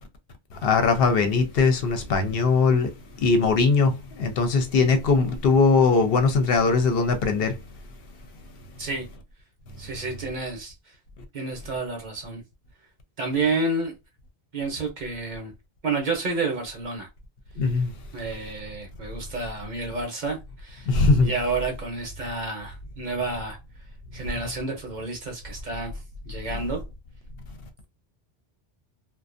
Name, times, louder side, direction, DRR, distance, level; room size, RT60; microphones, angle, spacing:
voice 1, 0.6-2.9 3.2-7.5 17.6-17.9 20.9-21.3, left 4 dB, 65° left, 0.7 m, -20 dB
voice 2, 9.8-10.9 11.3-12.4 13.2-13.9 14.5-15.5 15.8-17.1 17.8-17.9 18.1-20.9 21.2-23.6 24.1-25.9 26.2-26.8, right 3 dB, 50° right, 0.8 m, -30 dB
2.4 x 2.1 x 2.4 m
omnidirectional pair, 1.1 m